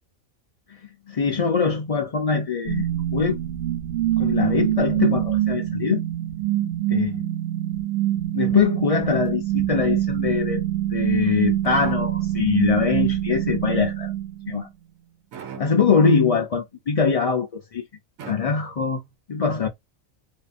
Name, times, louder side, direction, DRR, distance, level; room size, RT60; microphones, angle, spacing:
voice 1, 1.1-2.9 3.1-3.4 4.2-6.0 6.9-7.2 8.3-10.6 10.9-14.1 14.5-14.7 15.6-17.8 18.2-19.0 19.3-19.7, left 6 dB, 65° left, 0.3 m, -22 dB
sound 1, 2.7-14.6, right 13 dB, 65° right, 0.8 m, -25 dB
sound 2, 11.6-12.5 15.3-16.1 18.2-19.0, right 8 dB, 85° right, 1.1 m, -40 dB
2.7 x 2.5 x 2.2 m
omnidirectional pair, 1.4 m